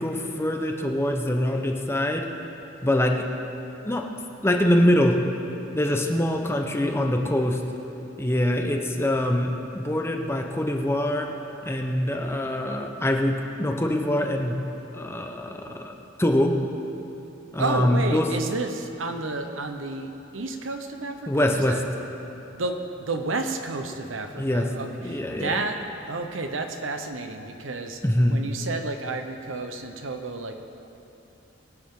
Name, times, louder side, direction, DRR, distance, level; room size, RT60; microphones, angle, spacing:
voice 1, 0.0-2.3 2.8-3.2 3.8-4.0 4.4-5.2 5.7-7.6 8.2-11.3 11.6-14.6 14.9-15.9 16.2-16.5 17.5-18.3 21.3-21.8 24.4-24.7 25.0-25.6 28.0-28.4, left 1 dB, 15° left, 3 dB, 0.9 m, -24 dB
voice 2, 17.6-21.8 22.5-28.0 28.3-30.6, right 3 dB, 90° right, 6 dB, 1.0 m, -31 dB
22.0 x 9.2 x 3.8 m, 2.9 s
head